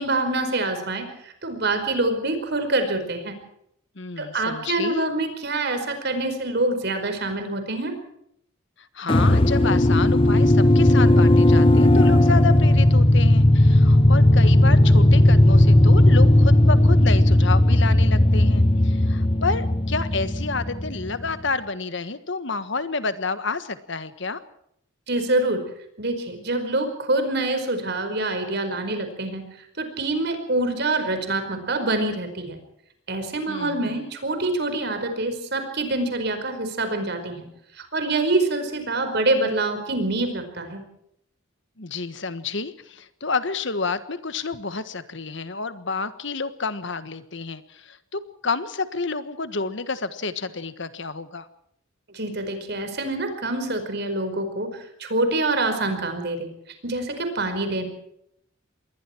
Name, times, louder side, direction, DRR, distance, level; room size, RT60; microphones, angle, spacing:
voice 1, 0.0-3.4 4.2-7.9 25.1-25.6 26.0-32.6 33.1-37.5 37.7-40.9 52.1-56.5 56.8-57.8, right 2 dB, 55° right, 7 dB, 5.0 m, -26 dB
voice 2, 3.9-5.1 8.8-24.4 33.5-34.0 41.8-51.5, left 4 dB, 60° left, 12 dB, 1.5 m, -29 dB
sound 1, 9.1-21.3, left 1 dB, 25° left, 1.0 m, -16 dB
27.0 x 22.0 x 4.6 m, 0.73 s
head